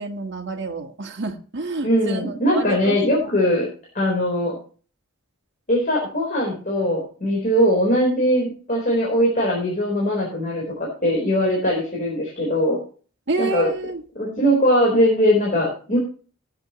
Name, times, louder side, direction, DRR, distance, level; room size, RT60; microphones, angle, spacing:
voice 1, 0.0-3.2 13.3-14.0, right 3 dB, 50° right, 3 dB, 1.6 m, -29 dB
voice 2, 1.8-3.7 3.9-4.6 5.7-12.8 13.4-13.7 14.2-16.0, equal, 35° left, -3 dB, 4.2 m, -20 dB
18.0 x 8.2 x 3.1 m, 0.39 s
head